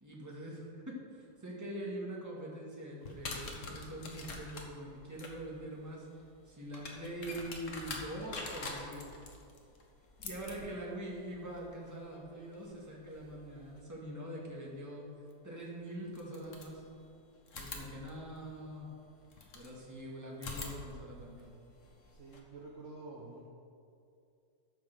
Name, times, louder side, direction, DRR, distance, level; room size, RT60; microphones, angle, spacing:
voice 1, 0.0-9.1 10.2-15.1 15.4-16.8 17.5-18.9 19.5-21.5, right 1 dB, 10° right, -4 dB, 1.7 m, -44 dB
sound 1, 3.0-13.8 15.3-15.4 16.1-17.1 17.5-19.7 20.3-22.4, left 3 dB, 45° left, 1.4 m, -47 dB
voice 2, 22.1-23.5, right 3 dB, 45° right, -3 dB, 1.3 m, -49 dB
12.5 x 5.6 x 6.8 m, 2.5 s
omnidirectional pair, 2.1 m